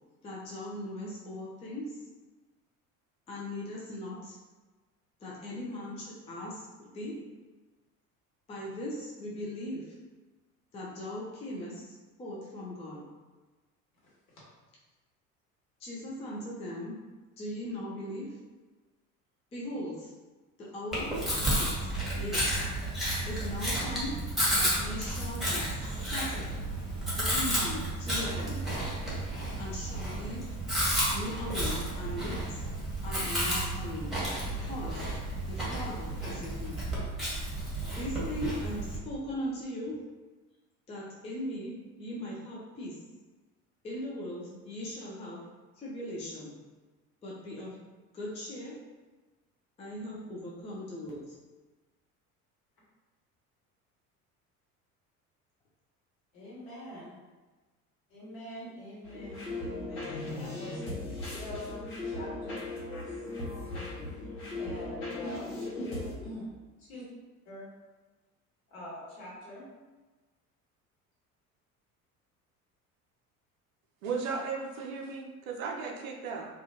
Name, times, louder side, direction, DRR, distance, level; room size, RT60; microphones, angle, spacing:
voice 1, 0.2-2.0 3.3-4.4 5.2-7.2 8.5-10.0 10.7-13.0 15.8-17.0 17.4-18.4 19.5-20.1 20.6-21.1 21.4-22.5 23.3-24.2 24.6-26.5 27.2-28.7 29.6-30.5 31.1-32.6 33.0-34.2 34.6-35.1 35.5-36.8 37.9-40.0 40.9-43.0 43.8-45.4 45.8-46.5 47.2-47.8 48.1-48.8 49.8-51.4, left 1 dB, 15° left, -5 dB, 0.4 m, -39 dB
Chewing mastication, 20.9-39.0, right 1 dB, ahead, 1.1 m, -32 dB
voice 2, 56.3-57.1 58.1-60.8 61.2-63.1 63.7-66.5 66.8-67.1 67.4-67.7 68.7-69.7, left 1 dB, 55° left, -8 dB, 1.3 m, -44 dB
sound 1, 59.0-66.1, left 2 dB, 75° left, 0.9 m, -38 dB
voice 3, 74.0-76.5, right 5 dB, 70° right, 1 dB, 0.6 m, -35 dB
2.4 x 2.3 x 2.7 m, 1.2 s
figure-of-eight pair, 65°, 44 cm